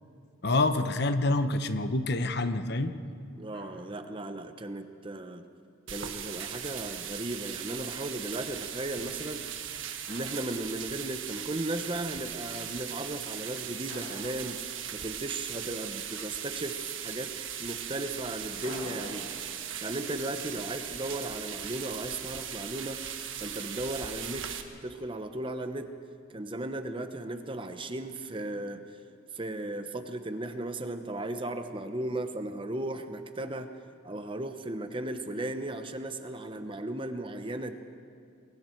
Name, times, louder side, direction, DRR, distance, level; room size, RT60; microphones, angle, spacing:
voice 1, 0.4-2.9, left 2 dB, 50° left, 10 dB, 0.9 m, -27 dB
voice 2, 3.4-5.5 5.9-9.4 10.1-14.6 14.9-17.3 17.6-19.3 19.8-23.0 23.4-24.5 24.8-25.9 26.3-28.8 29.3-33.7 34.0-37.7, right 1 dB, 25° right, 8 dB, 0.9 m, -36 dB
Drum, 3.5-4.2 6.2-7.3 10.1-11.2 13.9-15.5 18.6-21.6, left 1 dB, 80° left, 6.0 m, -50 dB
sound 1, 5.9-24.6, right 9 dB, 65° right, 1.5 m, -38 dB
27.5 x 22.0 x 4.6 m, 2.5 s
head